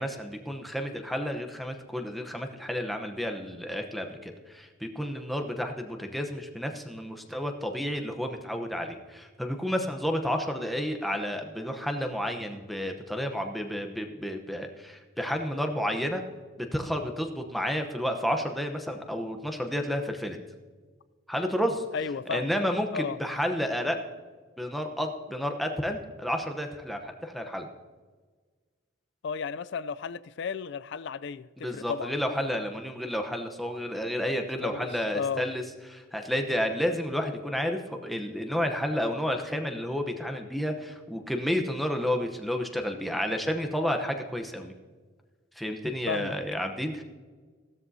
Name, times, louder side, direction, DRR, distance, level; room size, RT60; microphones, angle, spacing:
voice 1, 0.0-16.2 16.6-20.4 21.3-21.8 22.3-24.0 24.6-27.7 31.6-35.6 35.9-44.7 45.6-47.0, equal, ahead, 0.8 m, -31 dB
voice 2, 21.9-22.5 22.9-23.2 29.2-31.5 31.7-32.1 34.6-35.4 46.1-46.3, left 6 dB, 60° left, 0.4 m, -33 dB
15.5 x 13.5 x 2.7 m
head